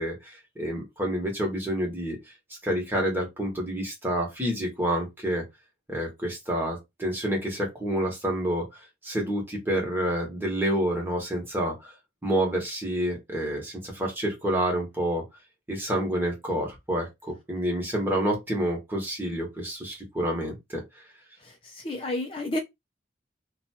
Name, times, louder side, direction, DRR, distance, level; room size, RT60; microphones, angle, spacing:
voice 1, 0.0-2.2 2.6-5.4 5.9-11.9 12.2-15.2 15.7-20.8, right 1 dB, 10° right, 1.2 m, -28 dB
voice 2, 21.4-22.6, left 1 dB, 30° left, 0.4 m, -31 dB
2.7 x 2.3 x 4.1 m
head